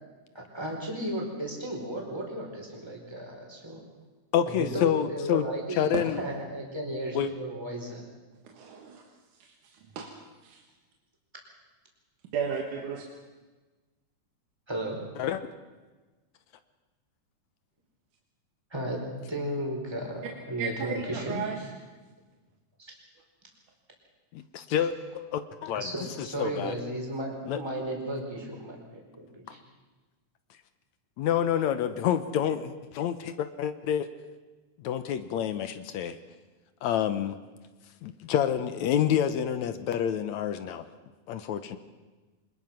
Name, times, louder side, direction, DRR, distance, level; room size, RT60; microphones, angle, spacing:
voice 1, 0.3-3.8 4.5-8.0 14.7-15.0 18.7-19.0 19.3-20.2 20.5-21.4 22.8-22.9 24.8-24.9 25.7-28.8 29.1-29.6, right 1 dB, 10° right, 0 dB, 4.4 m, -34 dB
voice 2, 4.3-6.2 7.1-7.3 15.2-15.4 24.3-25.9 26.2-26.8 27.5-27.6 29.5-29.6 31.2-34.1 34.8-36.2 36.8-37.4 38.0-40.9 41.3-41.8, left 9 dB, 70° left, 11 dB, 2.1 m, -28 dB
voice 3, 8.4-9.1 9.4-10.1 10.4-10.6 12.2-13.1 20.6-21.7, right 6 dB, 85° right, 2 dB, 3.1 m, -34 dB
25.5 x 20.5 x 5.9 m, 1.3 s
omnidirectional pair, 3.5 m